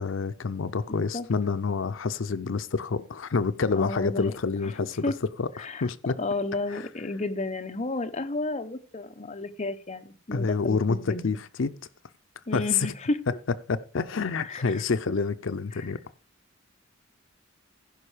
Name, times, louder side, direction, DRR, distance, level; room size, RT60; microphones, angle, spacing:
voice 1, 0.0-5.1 5.4-6.1 6.7-6.9 10.3-11.7 12.5-12.9 13.7-16.0, left 4 dB, 65° left, 0.6 m, -28 dB
voice 2, 0.9-1.3 3.8-4.3 4.6-4.7 5.0-5.1 5.6-5.9 6.2-11.2 12.5-13.2 14.4-14.8 15.8-15.9, left 2 dB, 35° left, 0.9 m, -32 dB
15.5 x 5.4 x 4.9 m
head